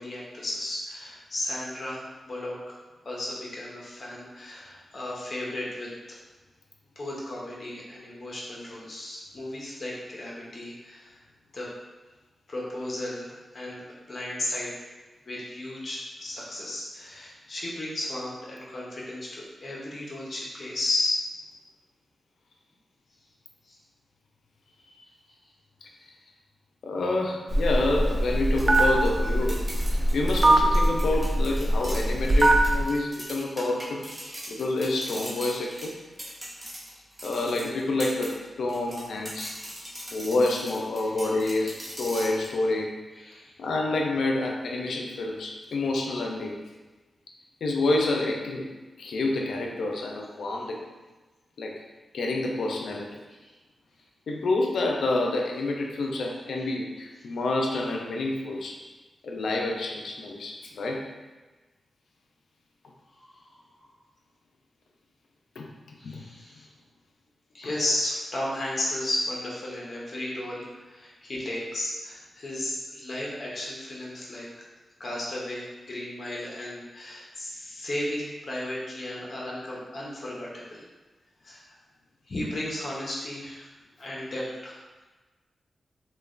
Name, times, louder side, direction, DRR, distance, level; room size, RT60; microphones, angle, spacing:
voice 1, 0.0-2.8 3.0-6.2 7.0-11.2 11.5-11.7 12.5-14.7 15.2-21.2 23.6-23.8 24.9-25.1 34.2-34.5 41.0-41.1 43.2-43.5 50.5-50.6 53.4-53.5 56.6-56.7 63.2-63.6 66.0-66.7 67.5-74.5 75.0-80.8 81.4-81.7 82.3-83.7 84.0-85.0, left 1 dB, 55° left, -4 dB, 0.7 m, -34 dB
voice 2, 26.8-29.7 30.1-34.0 34.5-36.0 37.2-39.5 40.1-43.0 43.6-46.6 47.6-48.7 49.0-50.8 51.6-51.8 52.1-53.2 54.3-58.8 59.2-61.1 65.6-65.7 66.0-66.2 67.6-67.7, left 2 dB, 90° left, 0 dB, 0.3 m, -28 dB
Telephone, 27.5-32.8, right 1 dB, 35° right, 0.3 m, -22 dB
sound 1, 28.6-38.3 38.7-42.5, equal, 20° right, 0.8 m, -40 dB
3.0 x 2.2 x 2.4 m, 1.2 s
cardioid pair, 70°, 0 cm